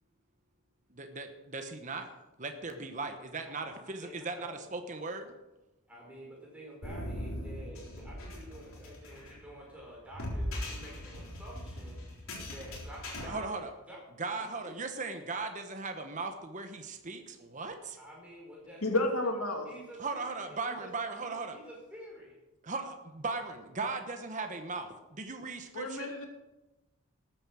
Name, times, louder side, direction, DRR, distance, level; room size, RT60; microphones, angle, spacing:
voice 1, 0.9-2.1 2.4-5.3 13.2-13.7 14.2-18.0 20.0-21.6 22.6-26.1, right 3 dB, 35° right, 6 dB, 1.1 m, -38 dB
voice 2, 4.0-4.6 5.9-13.5 13.9-14.0 14.3-14.7 18.0-19.0 19.6-22.4, right 1 dB, 5° right, -3 dB, 5.1 m, -50 dB
sound 1, 6.8-13.2, left 1 dB, 70° left, 3.9 m, -40 dB
voice 3, 18.8-19.7 25.7-26.3, left 2 dB, 90° left, 2 dB, 2.6 m, -30 dB
13.5 x 9.1 x 6.3 m, 1.0 s
head